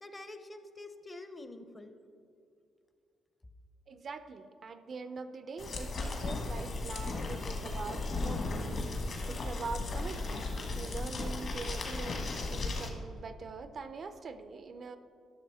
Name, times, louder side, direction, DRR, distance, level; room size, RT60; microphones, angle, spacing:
voice 1, 0.0-1.9 7.1-8.4, left 2 dB, 20° left, 9 dB, 0.6 m, -49 dB
voice 2, 3.9-8.9 9.3-15.0, right 4 dB, 50° right, 10 dB, 0.4 m, -43 dB
sound 1, 5.6-12.9, left 3 dB, 55° left, 1.3 m, -35 dB
12.0 x 6.1 x 3.5 m, 2.4 s
cardioid pair, 90°, 0 cm